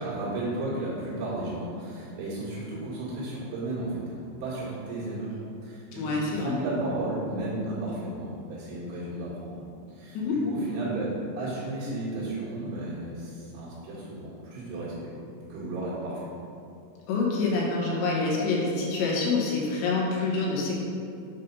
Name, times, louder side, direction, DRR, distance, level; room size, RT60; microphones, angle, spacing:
voice 1, 0.0-5.4 5.6-9.6 10.0-10.2 10.4-15.1 15.5-16.3, right 2 dB, 90° right, -8 dB, 4.6 m, -33 dB
voice 2, 5.9-6.6 10.2-10.4 17.1-20.7, left 3 dB, 75° left, -4 dB, 3.5 m, -26 dB
9.3 x 4.2 x 5.5 m, 2.6 s
omnidirectional pair, 5.3 m